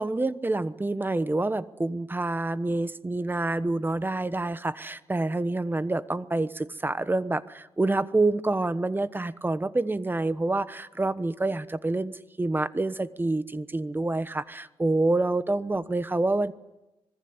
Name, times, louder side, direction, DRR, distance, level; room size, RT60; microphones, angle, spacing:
voice 1, 0.0-16.5, right 2 dB, 20° right, 14 dB, 1.1 m, -27 dB
26.0 x 20.5 x 9.7 m, 1.0 s
cardioid pair, 85°, 10 cm